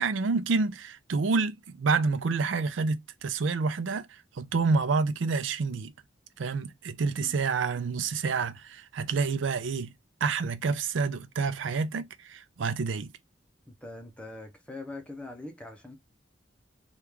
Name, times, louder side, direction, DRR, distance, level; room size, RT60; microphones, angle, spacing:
voice 1, 0.0-5.9 6.4-9.9 10.2-13.1, right 4 dB, 70° right, 0.4 m, -28 dB
voice 2, 13.7-16.0, left 2 dB, 5° left, 0.7 m, -42 dB
3.0 x 2.3 x 3.5 m
head